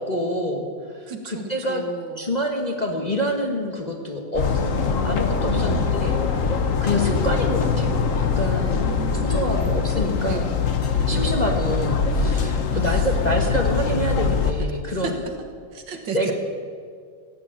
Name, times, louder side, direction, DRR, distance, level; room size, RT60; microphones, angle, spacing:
voice 1, 0.0-1.8 2.2-8.7 9.2-10.5 11.1-15.1 16.1-16.3, equal, 25° left, 1 dB, 1.2 m, -27 dB
voice 2, 1.1-2.3 5.4-6.0 8.7-10.0 10.3-10.5 10.9-11.2 12.7-13.1 14.9-15.2 15.7-16.3, right 6 dB, 70° right, 5 dB, 2.1 m, -34 dB
sound 1, 4.3-14.5, left 5 dB, 50° left, 1.2 m, -22 dB
16.0 x 9.4 x 8.7 m, 2.1 s
omnidirectional pair, 2.1 m